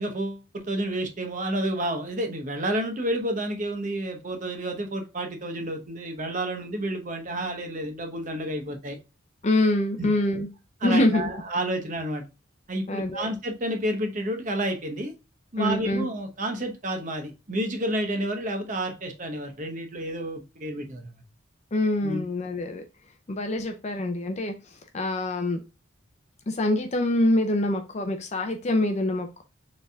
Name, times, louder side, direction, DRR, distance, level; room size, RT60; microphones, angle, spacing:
voice 1, 0.0-9.0 10.0-10.1 10.8-12.2 12.7-15.1 15.5-21.2 22.0-22.2, right 1 dB, 40° right, 4 dB, 0.9 m, -30 dB
voice 2, 9.4-10.5 10.8-11.3 12.9-13.3 15.6-16.1 21.7-22.8 23.3-24.5 24.9-25.6 26.5-29.4, left 1 dB, 35° left, 6 dB, 0.5 m, -25 dB
6.7 x 3.4 x 2.2 m, 0.29 s
head